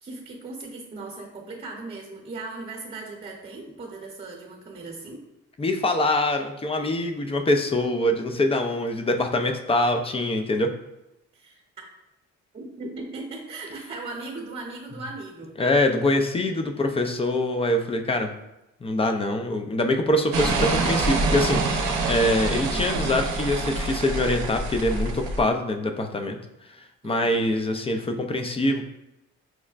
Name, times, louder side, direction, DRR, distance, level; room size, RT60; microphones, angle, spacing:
voice 1, 0.0-5.2 11.3-11.8 12.5-15.5 27.0-27.4, right 3 dB, 30° right, -2 dB, 0.9 m, -38 dB
voice 2, 5.6-10.7 15.6-18.4 18.8-26.4 26.7-28.8, left 1 dB, 20° left, 5 dB, 0.4 m, -24 dB
sound 1, 20.3-25.4, right 3 dB, 70° right, 0.6 m, -26 dB
5.9 x 2.1 x 2.4 m, 0.89 s
cardioid pair, 90°, 30 cm